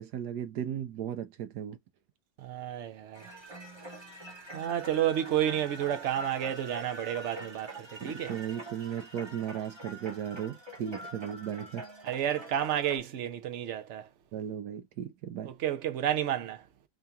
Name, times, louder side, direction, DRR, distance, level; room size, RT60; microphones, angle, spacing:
voice 1, 0.0-1.8 8.0-11.9 14.3-15.5, right 9 dB, 70° right, 1.3 m, -36 dB
voice 2, 2.4-3.2 4.5-8.3 12.0-14.1 15.5-16.6, right 11 dB, 55° right, 0.8 m, -31 dB
sound 1, 3.1-13.0, right 1 dB, 20° right, 1.1 m, -45 dB
3.7 x 2.8 x 3.4 m
omnidirectional pair, 1.9 m